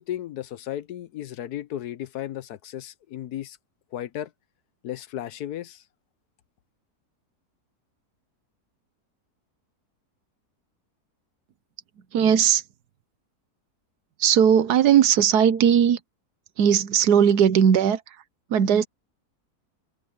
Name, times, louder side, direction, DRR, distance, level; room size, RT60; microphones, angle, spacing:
voice 1, 0.0-3.6 3.9-4.3 4.8-5.8, left 12 dB, 75° left, 1.3 m, -34 dB
voice 2, 12.1-12.6 14.2-16.0 16.6-18.2 18.5-18.9, right 8 dB, 80° right, 1.4 m, -18 dB
omnidirectional pair, 1.7 m